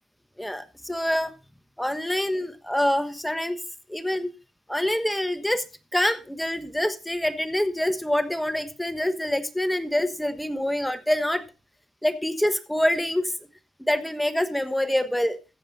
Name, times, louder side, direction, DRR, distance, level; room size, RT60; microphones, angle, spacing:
voice 1, 0.4-1.3 1.8-3.6 3.9-4.3 4.7-5.6 5.9-11.4 12.0-13.3 13.9-15.4, left 1 dB, 5° left, 11 dB, 1.1 m, -26 dB
14.5 x 7.4 x 4.1 m, 0.32 s
cardioid pair, 90°, 0 cm